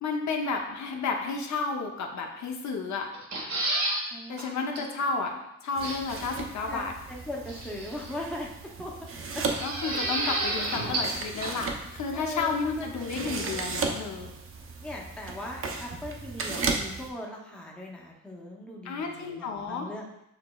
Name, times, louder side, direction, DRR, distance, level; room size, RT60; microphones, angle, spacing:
voice 1, 0.0-3.1 4.3-6.9 9.6-14.3 18.8-19.9, left 4 dB, 70° left, 2 dB, 0.6 m, -32 dB
sound 1, 3.1-4.0 4.4-4.5 4.8-4.9 5.8-6.2 7.5-8.1 9.5-11.2 11.4-11.5, right 1 dB, 65° right, 1.2 m, -30 dB
voice 2, 4.1-5.0 6.7-8.5 8.8-8.9 9.4-9.5 12.1-12.9 13.1-13.6 14.8-20.1, left 1 dB, 5° left, -2 dB, 0.6 m, -39 dB
sound 2, 5.8-17.1, right 4 dB, 45° right, 0.5 m, -36 dB
6.6 x 2.9 x 2.3 m, 0.83 s
wide cardioid pair, 150°, 30 cm